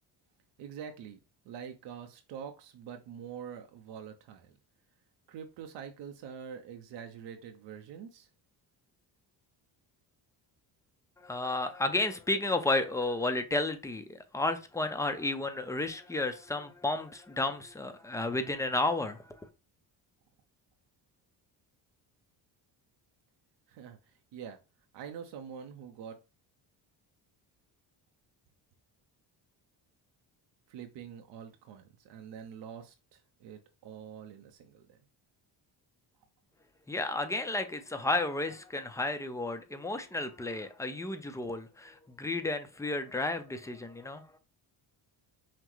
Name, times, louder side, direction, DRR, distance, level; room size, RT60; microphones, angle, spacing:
voice 1, 0.6-1.2 1.4-4.6 5.3-8.3 23.7-24.6 24.9-26.2 30.7-35.0, right 7 dB, 80° right, 0.7 m, -45 dB
voice 2, 11.2-19.2 36.9-44.4, left 2 dB, 10° left, 0.4 m, -32 dB
5.7 x 2.1 x 3.1 m
cardioid pair, 105°, 42 cm